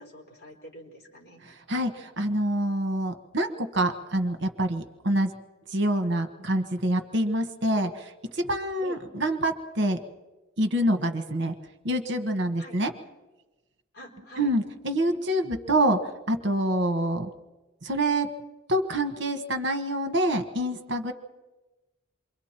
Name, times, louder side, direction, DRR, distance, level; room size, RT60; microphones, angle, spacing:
voice 1, 0.1-1.4 8.8-9.0 12.6-12.8 13.9-14.6, right 1 dB, 50° left, 0 dB, 4.6 m, -45 dB
voice 2, 1.4-5.3 5.7-10.0 10.6-11.5 11.8-12.9 14.4-17.3 17.8-18.3 18.7-21.1, right 1 dB, 55° right, 7 dB, 1.2 m, -26 dB
28.0 x 23.5 x 4.4 m, 1.2 s
head